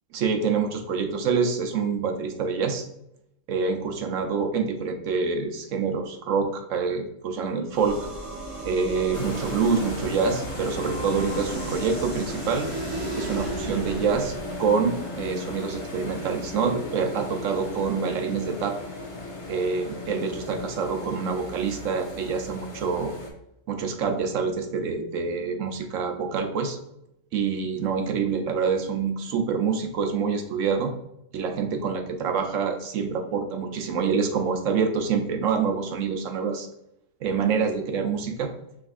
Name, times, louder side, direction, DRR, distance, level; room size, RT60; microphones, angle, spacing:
voice 1, 0.1-2.8 3.5-8.0 8.6-12.7 13.1-14.3 14.6-18.8 19.5-23.1 23.7-26.8 27.3-30.9 31.3-36.7 37.2-38.5, right 5 dB, 70° right, 5 dB, 1.0 m, -26 dB
sound 1, 7.7-14.6, right 2 dB, 30° right, 0.7 m, -35 dB
sound 2, 9.1-23.3, left 2 dB, 30° left, 0.7 m, -36 dB
5.0 x 3.3 x 2.5 m, 0.79 s
omnidirectional pair, 1.4 m